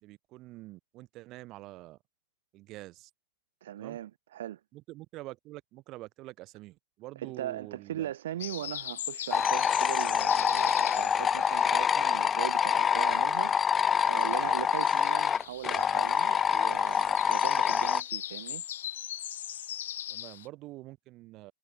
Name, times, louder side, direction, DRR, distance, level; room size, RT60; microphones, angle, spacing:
voice 1, 0.0-2.0 2.5-3.1 3.8-4.0 4.7-8.1 20.1-21.5, right 18 dB, 30° right, 3.8 m, -46 dB
voice 2, 3.6-4.6 7.2-18.6, right 12 dB, 70° right, 2.1 m, -39 dB
sound 1, 8.4-12.7 13.0-20.5, left 11 dB, 75° left, 0.9 m, -41 dB
sound 2, 9.3-18.0, left 7 dB, 15° left, 0.5 m, -26 dB
supercardioid pair, 170°, 0 cm